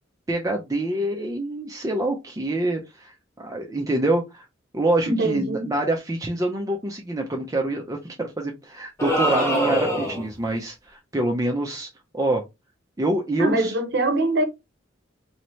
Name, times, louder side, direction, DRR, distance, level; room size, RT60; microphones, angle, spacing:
voice 1, 0.3-4.4 4.7-11.9 12.1-12.4 13.0-13.8, right 1 dB, 15° right, 0.5 m, -26 dB
voice 2, 5.1-5.7 13.4-14.4, right 2 dB, 60° right, 0.8 m, -23 dB
sound 1, 9.0-10.4, equal, 15° left, 1.1 m, -23 dB
3.1 x 2.8 x 3.0 m
head